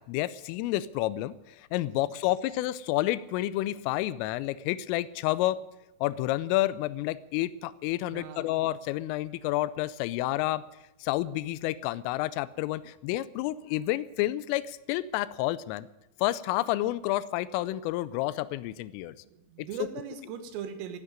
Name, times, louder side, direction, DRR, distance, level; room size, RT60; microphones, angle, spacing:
voice 1, 0.0-5.6 6.0-10.6 11.0-15.9 16.2-19.1, left 16 dB, 85° left, 17 dB, 3.2 m, -30 dB
voice 2, 8.1-8.5 19.2-21.0, right 8 dB, 80° right, 8 dB, 4.1 m, -39 dB
14.5 x 9.6 x 9.0 m, 0.94 s
omnidirectional pair, 5.9 m